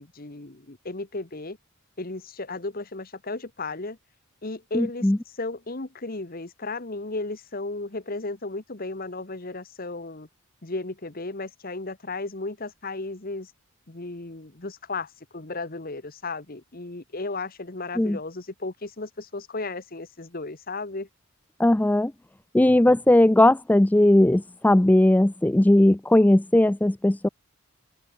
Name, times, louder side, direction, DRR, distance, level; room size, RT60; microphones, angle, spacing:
voice 1, 0.0-1.6 2.0-4.0 4.4-5.1 5.4-10.3 10.6-13.5 13.9-21.1, left 3 dB, 40° left, 1.4 m, -34 dB
voice 2, 4.7-5.2 18.0-18.2 21.6-22.1 22.5-27.3, left 1 dB, 5° left, 0.3 m, -18 dB
open air
head